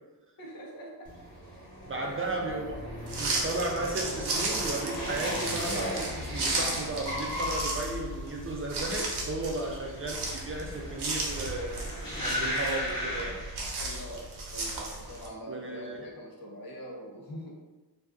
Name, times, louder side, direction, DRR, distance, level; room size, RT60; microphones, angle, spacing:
voice 1, 0.4-1.1 2.0-2.2 9.6-9.8 13.8-14.3 14.5-17.5, equal, 60° left, -1 dB, 0.8 m, -43 dB
sound 1, 1.0-14.1 14.4-15.0, equal, 10° left, 1.1 m, -37 dB
voice 2, 1.8-2.8 3.1-11.8 12.2-13.4 15.5-16.0, right 2 dB, 35° right, 0 dB, 0.4 m, -34 dB
sound 2, 3.1-15.3, right 2 dB, 70° right, 0.7 m, -35 dB
2.4 x 2.4 x 3.4 m, 1.2 s
wide cardioid pair, 95°, 41 cm